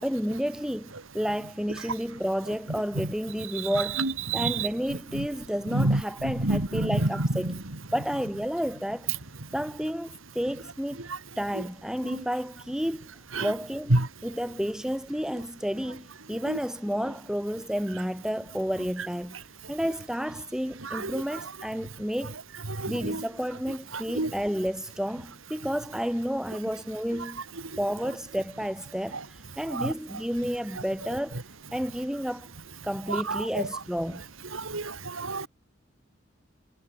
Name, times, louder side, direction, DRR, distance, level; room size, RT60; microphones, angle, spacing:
voice 1, 0.0-7.6 7.9-9.1 9.5-11.0 11.4-19.4 19.7-22.4 22.9-27.4 27.8-31.4 31.7-32.5 32.8-34.2, equal, 5° right, 6.0 m, -31 dB
voice 2, 5.8-6.0 6.5-6.6 24.2-24.3 34.7-34.8 35.2-35.5, right 1 dB, 85° right, 2.3 m, -25 dB
head